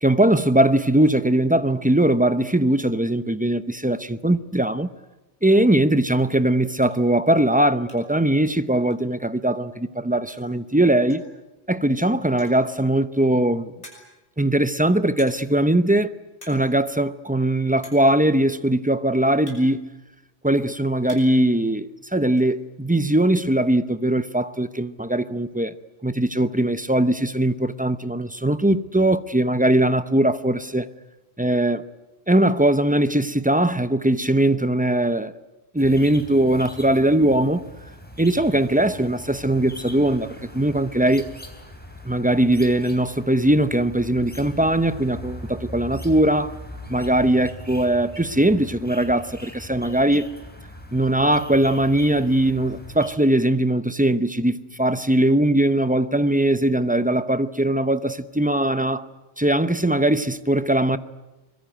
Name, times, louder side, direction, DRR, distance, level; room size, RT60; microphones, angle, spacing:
voice 1, 0.0-4.9 5.4-11.2 11.7-13.7 14.4-16.1 16.5-19.9 20.4-25.7 26.0-30.9 31.4-31.8 32.3-35.3 35.7-37.6 38.2-41.3 42.0-46.5 46.9-50.3 50.9-59.1 59.4-61.0, right 1 dB, 10° right, 0.7 m, -20 dB
sound 1, 6.1-6.3 6.8-7.1 7.4-8.3 8.5-8.6 8.9-9.0 10.0-10.1 10.3-10.6 11.1-11.4 12.2-12.7 13.3-13.4 13.8-14.3 15.2-15.6 15.9-16.1 16.3-16.7 16.9-17.0 17.8-18.2 19.0-20.3 20.7-21.5 21.7-22.5, equal, 40° left, 6.8 m, -47 dB
sound 2, 35.8-53.1, equal, 10° left, 3.8 m, -40 dB
24.5 x 22.0 x 9.1 m
omnidirectional pair, 1.1 m